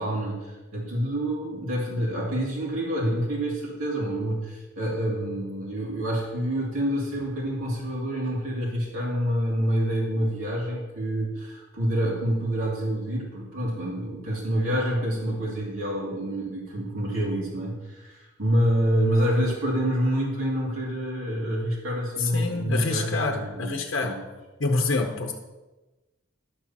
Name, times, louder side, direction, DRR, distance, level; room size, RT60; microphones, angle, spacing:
voice 1, 0.0-24.2, equal, 80° right, -4 dB, 2.6 m, -27 dB
voice 2, 22.2-24.2 24.6-25.3, left 3 dB, 55° left, 3 dB, 0.8 m, -27 dB
11.5 x 4.3 x 7.3 m, 1.1 s
head